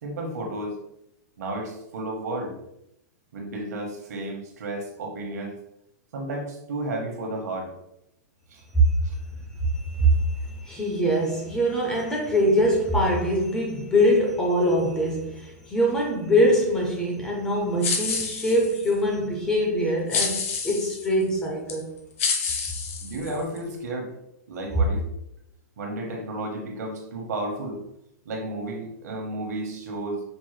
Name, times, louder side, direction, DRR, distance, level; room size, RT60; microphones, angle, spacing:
voice 1, 0.0-0.8 1.4-2.5 3.3-5.6 6.1-7.7 8.5-8.6 9.0-9.1 23.0-24.1 24.5-25.0 25.8-27.8 28.2-30.2, right 1 dB, 65° right, 1 dB, 1.1 m, -32 dB
voice 2, 9.7-21.9, equal, 10° left, -1 dB, 0.5 m, -23 dB
sound 1, 17.8-18.9 20.1-21.1 21.7-21.8 22.2-23.6, left 5 dB, 50° left, 0.8 m, -28 dB
5.3 x 2.0 x 3.2 m, 0.79 s
hypercardioid pair, 170°, 9 cm